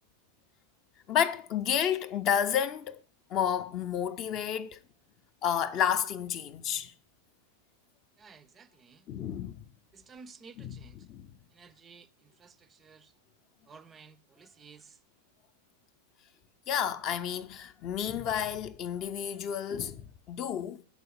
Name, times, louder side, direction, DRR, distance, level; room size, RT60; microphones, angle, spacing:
voice 1, 1.1-3.0 3.3-4.8 5.4-6.9 9.1-9.6 10.6-10.8 11.1-11.3 16.7-20.8, left 9 dB, 35° left, 0.5 m, -31 dB
voice 2, 8.2-9.1 9.9-11.1 11.5-13.1 13.7-15.0, right 5 dB, 20° right, 0.4 m, -54 dB
8.2 x 4.1 x 6.4 m
figure-of-eight pair, 90°, 0 cm